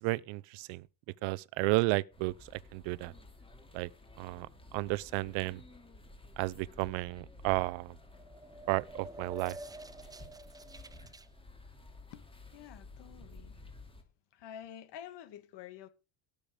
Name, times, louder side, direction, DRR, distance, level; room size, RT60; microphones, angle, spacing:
voice 1, 0.0-0.8 1.2-3.1 3.7-3.9 4.2-4.5 4.7-5.6 6.4-7.9 8.7-9.6, right 22 dB, 65° right, 0.8 m, -32 dB
sound 1, 2.1-14.0, left 2 dB, 10° left, 2.8 m, -53 dB
sound 2, 8.0-11.3, right 1 dB, 10° right, 0.6 m, -49 dB
voice 2, 12.1-13.6 14.3-15.9, left 10 dB, 55° left, 2.4 m, -49 dB
17.5 x 6.8 x 5.1 m
cardioid pair, 135°, 50 cm